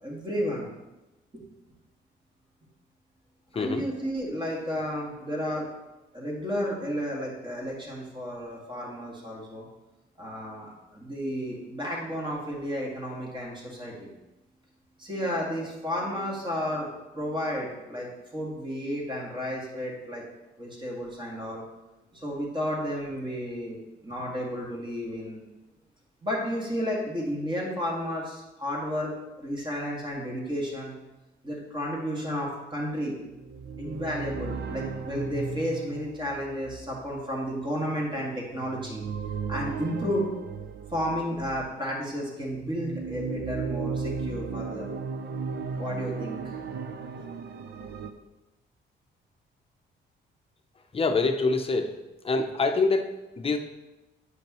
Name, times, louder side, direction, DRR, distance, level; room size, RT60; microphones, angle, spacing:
voice 1, 0.0-0.7 1.3-1.4 3.5-5.7 6.1-9.7 10.2-14.1 15.0-18.1 18.3-20.2 20.6-21.6 22.1-25.4 26.2-29.1 29.4-30.9 31.4-33.1 33.8-39.0 39.5-40.3 40.9-44.9 45.8-46.5 47.2-47.3, equal, 25° right, -3 dB, 2.1 m, -32 dB
sound 1, 33.3-41.8 42.4-48.1, right 5 dB, 55° right, 0.6 m, -36 dB
voice 2, 50.9-52.0 52.2-53.6, left 3 dB, 30° left, 6 dB, 0.8 m, -25 dB
8.3 x 5.1 x 3.1 m, 1.0 s
cardioid pair, 90°, 20 cm